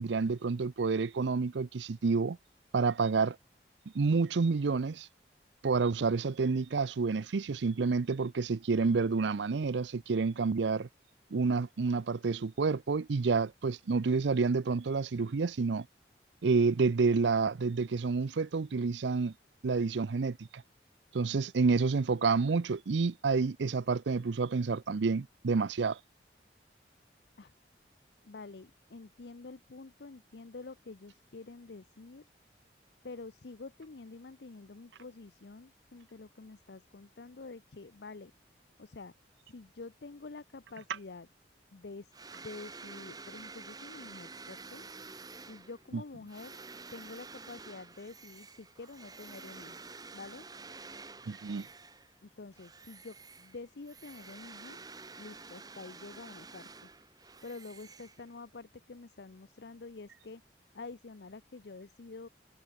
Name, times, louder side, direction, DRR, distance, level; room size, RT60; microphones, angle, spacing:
voice 1, 0.0-2.4 2.7-3.4 3.9-5.1 5.6-10.9 11.3-15.9 16.4-19.3 19.6-20.6 21.1-26.0 51.3-51.7, right 4 dB, 80° right, 0.5 m, -29 dB
voice 2, 28.2-32.3 33.0-38.3 38.8-39.1 39.5-41.3 41.7-44.8 45.5-46.6 46.9-49.8 50.1-50.5 52.2-54.8 55.2-56.9 57.4-60.4 60.7-62.3, left 3 dB, 70° left, 0.7 m, -48 dB
sound 1, 42.1-52.2 52.5-58.6, right 4 dB, 20° right, 2.2 m, -49 dB
head